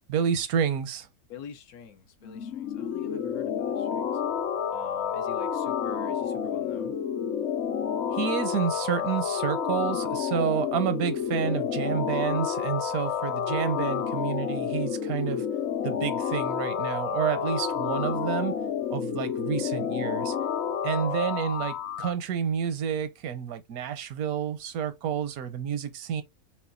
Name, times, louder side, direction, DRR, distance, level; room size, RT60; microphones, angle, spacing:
voice 1, 0.1-1.1 8.1-15.5 15.8-18.6 18.9-20.3 20.8-26.2, right 8 dB, 80° right, 1.1 m, -29 dB
voice 2, 1.3-4.2 4.7-7.0, left 8 dB, 85° left, 1.3 m, -46 dB
sound 1, 2.2-22.1, left 8 dB, 65° left, 0.7 m, -30 dB
5.7 x 2.3 x 2.5 m
omnidirectional pair, 1.5 m